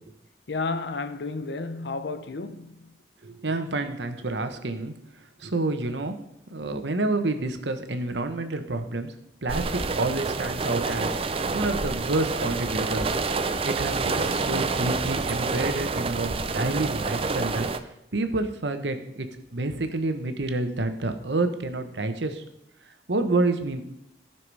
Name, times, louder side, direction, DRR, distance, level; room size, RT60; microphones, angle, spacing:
voice 1, 0.5-2.8, left 3 dB, 75° left, 0.8 m, -31 dB
voice 2, 3.2-4.9 5.4-6.1 6.5-9.1 9.4-13.1 13.6-17.7 18.1-19.3 19.5-22.4 23.1-23.8, right 2 dB, 85° right, 1.1 m, -28 dB
sound 1, 9.5-17.8, right 3 dB, 35° right, 0.6 m, -28 dB
14.5 x 5.9 x 4.8 m
head